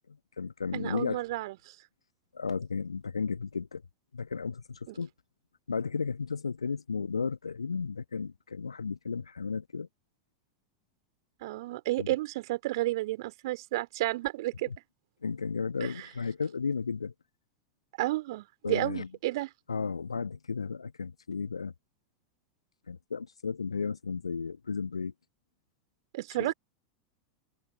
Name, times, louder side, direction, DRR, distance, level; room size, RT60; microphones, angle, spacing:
voice 1, 0.1-1.2 2.3-3.8 4.1-5.1 5.7-9.9 12.0-12.1 14.5-14.8 15.2-17.1 18.6-19.2 19.7-21.7 22.9-25.1 26.3-26.5, left 5 dB, 75° left, 1.5 m, -34 dB
voice 2, 0.7-1.7 4.9-5.0 11.4-14.7 15.8-16.1 18.0-19.5 26.1-26.5, right 18 dB, 55° right, 3.1 m, -32 dB
figure-of-eight pair, 85°, 3 cm